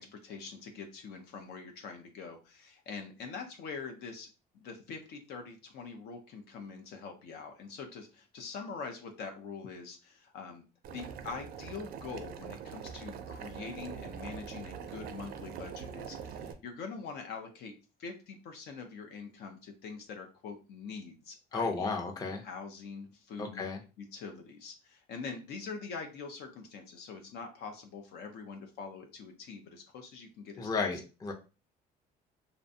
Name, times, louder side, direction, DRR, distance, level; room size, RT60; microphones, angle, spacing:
voice 1, 0.0-4.3 4.5-10.6 10.9-17.7 18.0-21.9 22.4-23.6 24.0-30.9, left 5 dB, 75° left, 4 dB, 0.5 m, -44 dB
Boiling, 10.8-16.5, right 7 dB, 60° right, 0.4 m, -43 dB
voice 2, 21.5-22.4 23.4-23.8 30.6-31.3, left 4 dB, 20° left, 3 dB, 0.5 m, -33 dB
2.5 x 2.1 x 2.6 m, 0.32 s
cardioid pair, 110°, 17 cm